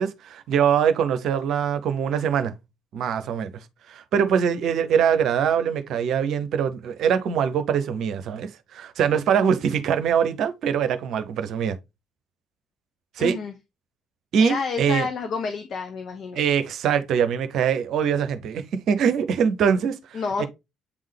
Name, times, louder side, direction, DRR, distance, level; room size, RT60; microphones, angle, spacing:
voice 1, 0.0-2.5 2.9-3.5 3.9-11.8 13.2-13.4 14.3-15.1 16.3-20.5, right 7 dB, 65° right, 0.8 m, -23 dB
voice 2, 13.2-13.5 14.4-16.4 20.1-20.5, left 5 dB, 55° left, 0.9 m, -29 dB
8.3 x 3.7 x 3.4 m
hypercardioid pair, 45°, 0 cm